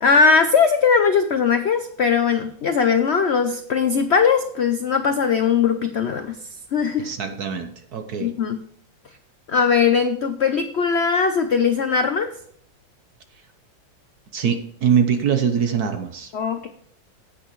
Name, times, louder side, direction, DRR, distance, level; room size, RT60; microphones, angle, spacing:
voice 1, 0.0-6.4 6.7-7.1 8.2-8.6 9.5-12.3 16.3-16.7, left 6 dB, 85° left, 8 dB, 0.5 m, -19 dB
voice 2, 7.0-8.3 14.3-16.3, right 7 dB, 60° right, 7 dB, 1.3 m, -23 dB
16.5 x 6.2 x 3.1 m, 0.64 s
omnidirectional pair, 2.0 m